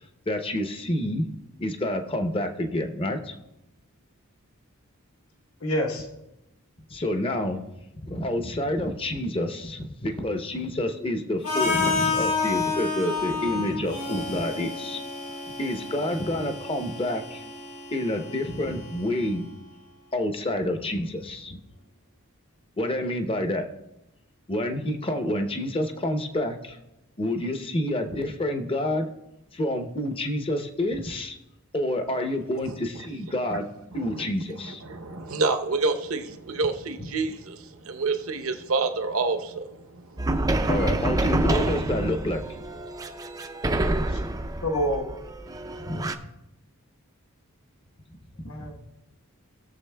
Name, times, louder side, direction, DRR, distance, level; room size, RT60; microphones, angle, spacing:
voice 1, 0.3-1.2 1.6-3.3 6.9-7.6 8.0-15.0 15.6-17.4 17.9-19.4 20.1-21.6 22.8-23.7 24.5-26.8 27.2-29.1 29.5-31.4 31.7-34.8 40.7-42.4 45.8-46.1, left 1 dB, 25° left, 0.7 m, -28 dB
voice 2, 5.6-6.1 41.4-41.6 44.1-44.2 44.6-45.1 48.5-48.7, equal, 70° left, 1.1 m, -27 dB
Harmonica, 11.4-19.3, left 4 dB, 85° left, 3.8 m, -30 dB
voice 3, 34.6-40.6, right 3 dB, 65° right, 0.8 m, -28 dB
sound 1, 40.2-46.2, right 1 dB, 15° right, 0.4 m, -27 dB
18.5 x 6.9 x 2.2 m
head